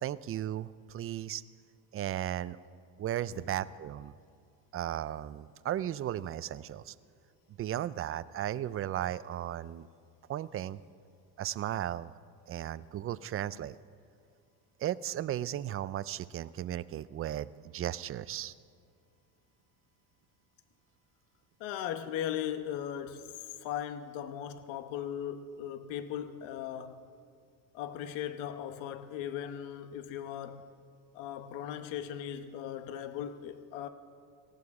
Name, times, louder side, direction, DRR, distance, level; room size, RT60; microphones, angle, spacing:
voice 1, 0.0-1.4 1.9-2.6 3.0-4.1 4.7-6.9 7.6-9.9 10.3-10.8 11.4-12.1 12.5-13.8 14.8-18.5, right 12 dB, 35° right, 0.4 m, -35 dB
voice 2, 21.6-27.0 27.7-30.7 31.1-33.9, left 10 dB, 90° left, 1.1 m, -38 dB
18.5 x 15.0 x 4.8 m
cardioid pair, 125°, 44 cm